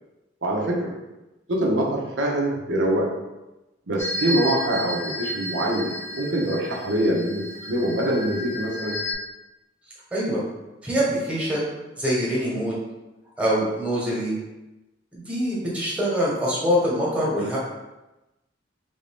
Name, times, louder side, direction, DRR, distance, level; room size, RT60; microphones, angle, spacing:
voice 1, 0.4-0.9 1.5-3.1 3.9-9.0, right 1 dB, 90° right, -2 dB, 0.7 m, -24 dB
sound 1, 4.0-9.1, left 1 dB, 15° left, 0.5 m, -32 dB
voice 2, 10.1-10.4 10.8-11.7 12.0-12.8 13.4-14.4 15.1-17.6, equal, 5° right, -6 dB, 1.0 m, -24 dB
3.4 x 2.6 x 3.4 m, 1.0 s
head